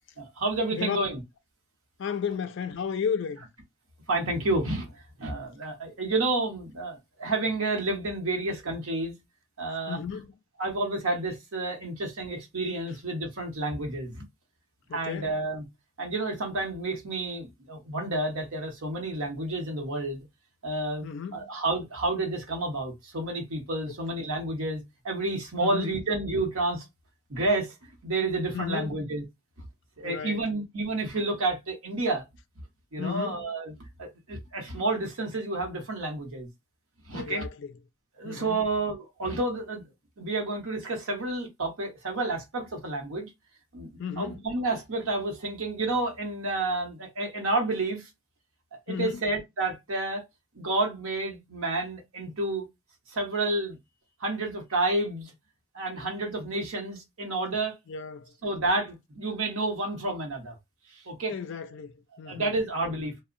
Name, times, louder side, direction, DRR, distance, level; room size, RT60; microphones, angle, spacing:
voice 1, 0.2-1.2 4.1-4.9 5.2-9.1 9.6-10.0 10.6-14.2 14.9-15.7 16.0-20.2 20.6-26.8 27.3-27.7 28.0-29.2 30.0-32.2 32.9-33.7 34.0-36.5 37.1-37.4 38.2-39.8 40.2-43.3 43.7-43.9 44.2-48.1 48.7-50.2 50.6-52.7 53.1-53.8 54.2-55.3 55.7-57.7 58.4-60.5 60.9-61.3 62.2-63.1, right 2 dB, 70° right, 0.8 m, -30 dB
voice 2, 2.0-3.5 9.9-10.3 14.9-15.3 21.0-21.5 23.9-24.0 25.6-25.9 28.5-28.9 30.0-30.4 33.0-33.4 37.1-37.7 38.2-38.7 44.0-44.4 48.9-49.2 57.9-58.3 61.3-62.5 62.8-62.9, left 7 dB, 55° left, 0.3 m, -33 dB
2.7 x 2.0 x 2.5 m
head